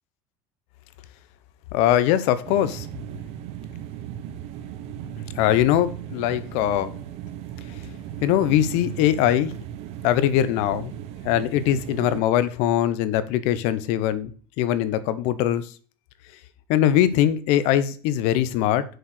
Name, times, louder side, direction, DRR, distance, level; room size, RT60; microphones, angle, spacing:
voice 1, 1.7-2.9 5.3-6.9 8.2-9.5 10.0-10.9 11.2-14.3 14.6-15.7 16.7-18.9, left 11 dB, 70° left, 15 dB, 0.9 m, -21 dB
sound 1, 2.4-12.2, right 11 dB, 60° right, 0.8 m, -37 dB
6.4 x 4.7 x 6.4 m, 0.39 s
supercardioid pair, 115°, 12 cm